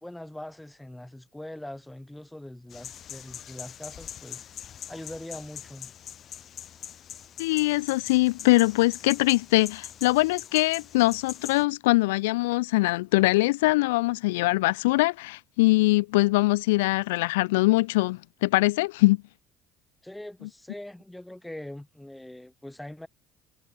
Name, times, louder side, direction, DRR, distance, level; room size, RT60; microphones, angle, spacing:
voice 1, 0.0-4.5 4.9-5.9 20.0-23.1, left 1 dB, 5° left, 1.4 m, -42 dB
sound 1, 2.7-11.6, left 9 dB, 50° left, 1.1 m, -43 dB
voice 2, 7.4-19.2, left 21 dB, 75° left, 0.3 m, -22 dB
hypercardioid pair, 60°, 0 cm